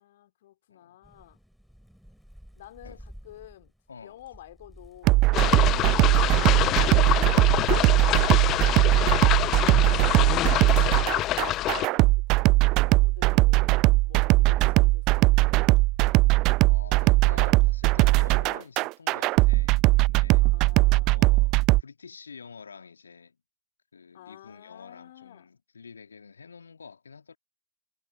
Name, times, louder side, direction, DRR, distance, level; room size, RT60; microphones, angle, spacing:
voice 1, 0.0-1.4 2.6-3.7 4.0-5.2 5.7-6.1 9.5-13.7 14.0-15.7 20.4-21.4 24.1-25.5, left 14 dB, 55° left, 3.6 m, -50 dB
Thunder / Rain, 1.0-10.7 11.2-13.2 13.8-18.6, equal, ahead, 6.5 m, -52 dB
voice 2, 3.9-4.2 9.7-10.4 16.6-20.5 21.0-23.4 23.9-27.4, left 5 dB, 75° left, 2.5 m, -47 dB
sound 1, 5.0-21.8, right 22 dB, 40° right, 0.5 m, -20 dB
sound 2, 5.3-11.9, left 15 dB, 35° left, 0.5 m, -26 dB
figure-of-eight pair, 90°, 0 cm